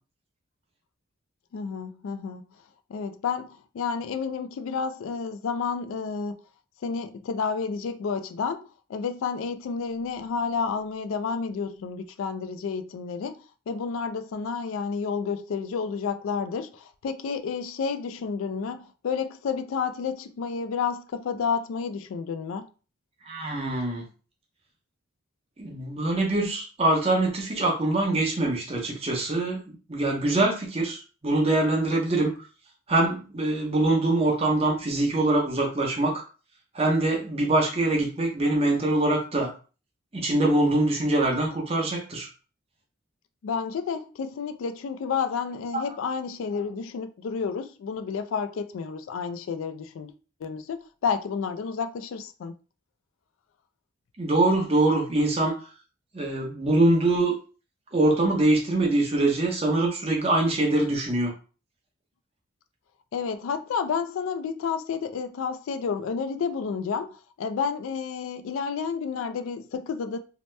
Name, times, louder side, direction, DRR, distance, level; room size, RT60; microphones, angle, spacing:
voice 1, 1.5-2.5 2.9-6.4 6.8-22.7 43.4-50.1 50.4-52.5 63.1-70.2, left 5 dB, 80° left, 0.3 m, -30 dB
voice 2, 23.3-24.1 25.6-29.6 29.9-32.4 32.9-36.2 36.7-39.5 40.1-42.3 45.7-45.8 54.2-55.5 56.1-57.3 57.9-61.3, right 2 dB, 30° right, 0.7 m, -23 dB
2.8 x 2.1 x 3.2 m
head